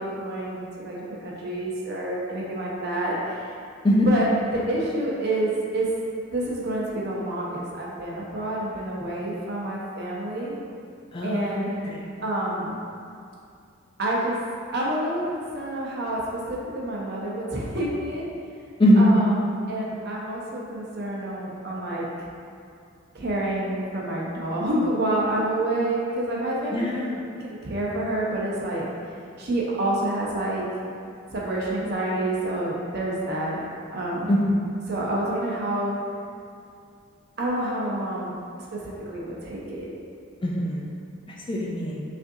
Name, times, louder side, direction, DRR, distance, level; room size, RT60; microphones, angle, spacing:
voice 1, 0.0-3.5 4.1-5.9 6.3-10.6 11.2-11.8 12.2-12.8 14.0-14.4 14.7-18.3 19.0-19.3 19.7-22.1 23.1-27.1 27.6-28.8 29.4-30.7 31.3-33.6 33.9-34.3 34.9-36.0 37.4-38.3 38.7-39.9, right 1 dB, 50° right, -4 dB, 0.7 m, -28 dB
voice 2, 11.1-12.1 18.8-19.1 26.7-27.2 34.3-34.4 40.4-40.8 41.5-42.0, equal, 25° left, -3 dB, 0.3 m, -21 dB
5.0 x 2.6 x 2.7 m, 2.4 s
head